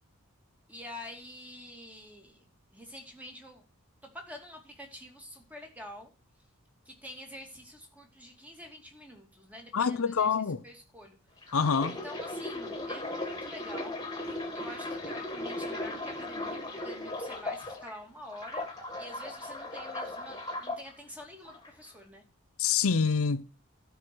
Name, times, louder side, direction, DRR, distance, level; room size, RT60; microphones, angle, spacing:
voice 1, 0.7-2.5 2.7-3.6 4.1-6.1 6.8-10.4 10.6-11.2 11.8-18.7 19.0-22.2, left 1 dB, 5° right, 2.5 m, -47 dB
voice 2, 9.7-10.6 11.5-12.0 22.6-23.4, left 6 dB, 70° left, 0.6 m, -26 dB
sound 1, 11.4-17.9 18.3-20.8 21.5-21.7, left 2 dB, 15° left, 2.1 m, -37 dB
12.5 x 4.8 x 7.6 m
head